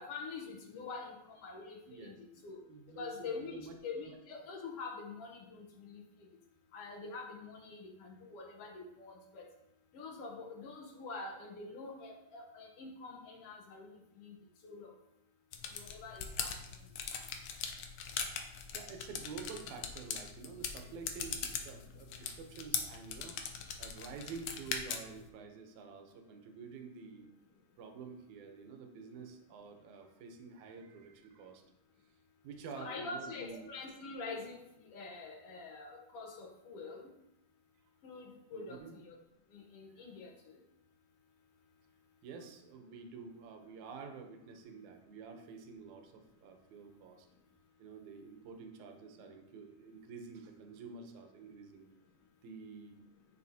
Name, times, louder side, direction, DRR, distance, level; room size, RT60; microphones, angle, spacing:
voice 1, 0.0-2.6 2.9-6.0 6.7-9.4 9.9-13.9 14.2-14.4 14.6-14.9 15.7-16.5 32.7-37.1 38.0-39.2 39.5-40.6, left 4 dB, 65° left, 0 dB, 1.6 m, -45 dB
voice 2, 1.9-3.7 4.1-4.2 18.7-23.4 23.8-27.3 27.8-31.6 32.4-33.7 38.5-39.0 42.2-47.3 47.8-51.9 52.4-53.0, right 5 dB, 80° right, 4 dB, 2.2 m, -49 dB
sound 1, 15.5-25.3, left 7 dB, 85° left, 1.3 m, -41 dB
9.5 x 5.2 x 2.8 m, 0.86 s
omnidirectional pair, 3.4 m